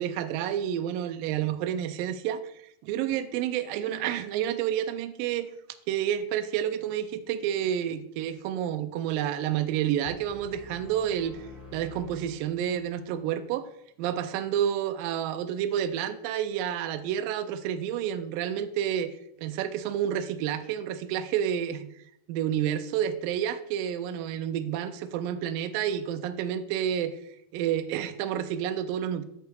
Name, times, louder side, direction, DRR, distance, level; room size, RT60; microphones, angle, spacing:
voice 1, 0.0-2.5 2.8-5.5 5.9-11.4 11.7-13.7 14.0-19.1 19.4-21.9 22.3-27.2 27.5-29.2, right 10 dB, 90° right, 10 dB, 1.9 m, -29 dB
sound 1, 10.0-13.1, left 2 dB, 85° left, 5.3 m, -48 dB
14.5 x 5.7 x 2.3 m, 0.74 s
omnidirectional pair, 4.5 m